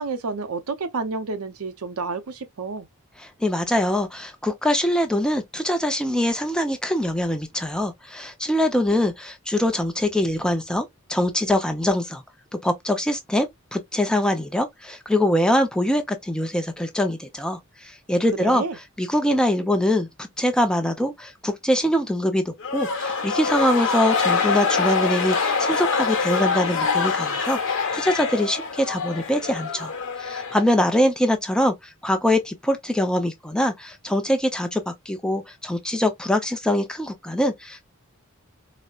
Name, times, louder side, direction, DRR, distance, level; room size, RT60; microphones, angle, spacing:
voice 1, 0.0-2.9 18.4-18.8, right 4 dB, 90° right, 0.6 m, -30 dB
voice 2, 3.2-12.2 12.6-18.6 19.0-29.9 30.2-37.8, left 1 dB, 5° left, 0.5 m, -23 dB
sound 1, 22.6-31.0, left 5 dB, 60° left, 1.0 m, -25 dB
4.1 x 2.1 x 2.3 m
head